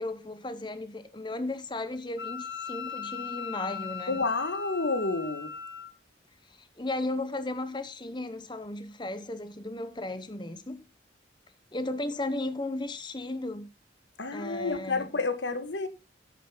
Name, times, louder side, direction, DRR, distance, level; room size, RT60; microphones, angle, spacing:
voice 1, 0.0-4.2 6.5-10.9 11.7-13.7 14.3-15.1, left 2 dB, 25° left, 0.9 m, -35 dB
Wind instrument woodwind instrument, 2.2-5.9, left 6 dB, 75° left, 1.0 m, -39 dB
voice 2, 4.1-5.5 14.2-15.9, left 3 dB, 90° left, 1.6 m, -30 dB
11.0 x 9.4 x 3.8 m
head